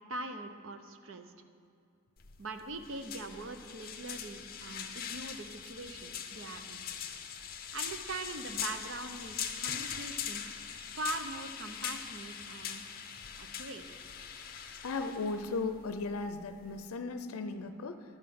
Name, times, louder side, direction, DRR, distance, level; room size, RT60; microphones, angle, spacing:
voice 1, 0.1-1.3 2.4-6.9 7.7-10.4 10.9-12.8 13.4-13.8, right 2 dB, 65° right, 8 dB, 0.7 m, -42 dB
sound 1, 2.2-16.8, left 8 dB, 45° left, 0.6 m, -42 dB
voice 2, 14.8-18.0, left 3 dB, 85° left, 9 dB, 0.5 m, -36 dB
12.0 x 5.7 x 7.7 m, 2.3 s
head